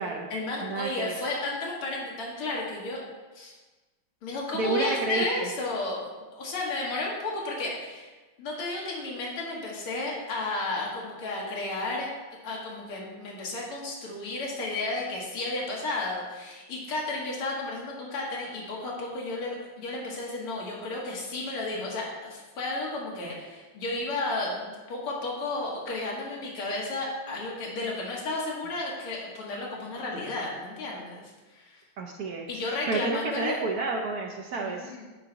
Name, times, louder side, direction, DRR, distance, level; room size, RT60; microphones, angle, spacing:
voice 1, 0.0-3.0 3.3-3.5 4.2-8.1 8.4-12.1 12.4-31.2 31.5-31.8 32.5-33.6 34.6-35.0, left 2 dB, 75° left, -4 dB, 2.4 m, -33 dB
voice 2, 0.6-1.1 4.5-5.5 23.2-23.4 32.0-34.9, right 3 dB, 80° right, 1 dB, 0.8 m, -31 dB
10.5 x 4.6 x 3.9 m, 1.2 s
omnidirectional pair, 2.4 m